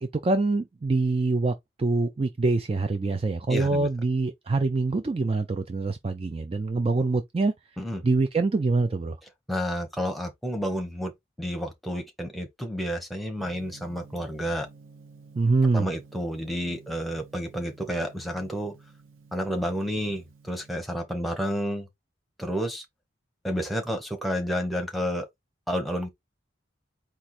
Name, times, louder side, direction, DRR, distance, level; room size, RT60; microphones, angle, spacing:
voice 1, 0.0-7.5 8.0-9.2 15.4-15.9, right 3 dB, 30° right, 0.3 m, -25 dB
voice 2, 3.5-3.9 7.8-8.0 9.5-11.1 11.4-14.7 15.7-18.7 19.3-21.9 22.4-22.8 23.4-25.3 25.7-26.1, equal, ahead, 0.9 m, -30 dB
Gong, 13.4-20.7, right 4 dB, 85° right, 1.0 m, -52 dB
4.5 x 2.4 x 4.1 m
head